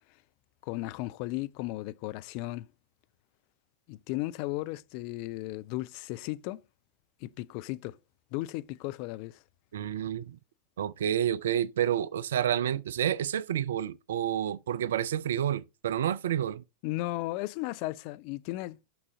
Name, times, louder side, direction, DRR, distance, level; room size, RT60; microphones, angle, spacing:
voice 1, 0.6-2.7 3.9-6.6 7.2-8.0 8.3-9.4 16.8-18.8, left 18 dB, 45° left, 0.4 m, -35 dB
voice 2, 9.7-10.4 10.8-16.6, right 10 dB, 60° right, 0.4 m, -29 dB
6.1 x 6.1 x 3.7 m
figure-of-eight pair, 90°, 0 cm